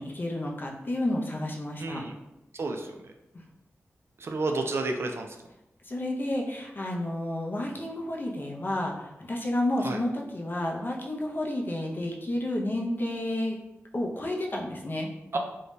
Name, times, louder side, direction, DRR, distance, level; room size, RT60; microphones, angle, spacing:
voice 1, 0.0-2.0 3.3-3.4 5.8-13.6 13.9-15.1 15.3-15.4, left 1 dB, 40° left, -1 dB, 0.5 m, -31 dB
voice 2, 1.8-2.1 2.5-2.9 4.2-5.4 9.8-10.0 15.3-15.4, right 3 dB, 55° right, 3 dB, 0.3 m, -30 dB
2.6 x 2.2 x 3.0 m, 0.93 s
wide cardioid pair, 90°, 5 cm